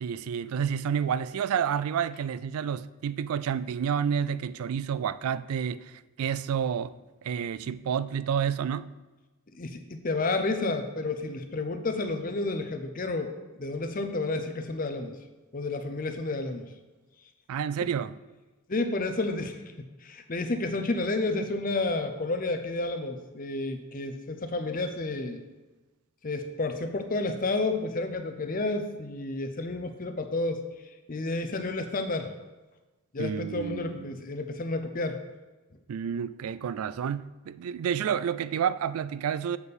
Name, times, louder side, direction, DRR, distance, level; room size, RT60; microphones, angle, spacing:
voice 1, 0.0-6.9 7.2-8.9 17.5-18.1 33.2-34.2 35.9-39.6, right 8 dB, 80° right, 0.3 m, -30 dB
voice 2, 9.5-15.1 15.5-16.6 17.8-17.9 18.7-25.4 26.2-30.6 31.1-32.3 33.1-35.2, left 2 dB, 40° left, 0.6 m, -31 dB
6.9 x 4.3 x 6.7 m
head